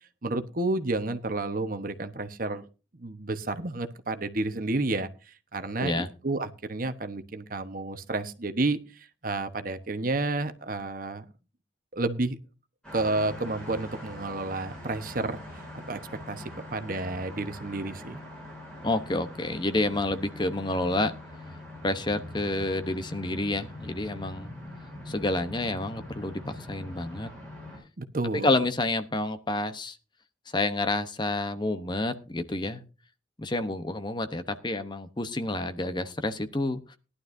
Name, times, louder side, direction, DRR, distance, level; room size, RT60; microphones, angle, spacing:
voice 1, 0.2-2.6 3.0-11.2 11.9-12.4 12.9-16.0 16.3-18.2 28.0-28.5, right 2 dB, 45° right, 9 dB, 1.0 m, -31 dB
sound 1, 12.8-27.8, left 1 dB, 5° left, 7.9 m, -43 dB
voice 2, 18.8-21.1 21.8-24.5 25.1-27.3 28.4-30.0 30.5-32.8 33.4-37.0, left 2 dB, 25° left, 10 dB, 0.8 m, -29 dB
19.0 x 11.5 x 2.6 m, 0.32 s
head